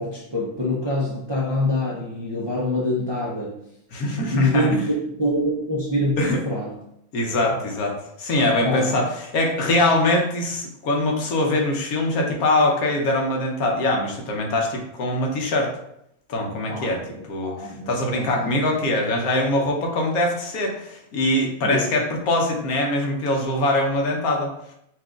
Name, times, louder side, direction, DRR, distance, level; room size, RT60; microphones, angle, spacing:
voice 1, 0.0-3.6 4.3-4.7 5.2-6.7 7.3-7.5 8.6-8.9 16.6-18.6 21.6-21.9, left 1 dB, 35° right, -6 dB, 0.4 m, -25 dB
voice 2, 3.9-4.8 6.2-6.4 7.1-15.8 16.3-17.0 17.3-24.5, left 1 dB, 80° left, 1 dB, 1.3 m, -23 dB
5.9 x 2.5 x 2.4 m, 0.77 s
omnidirectional pair, 1.5 m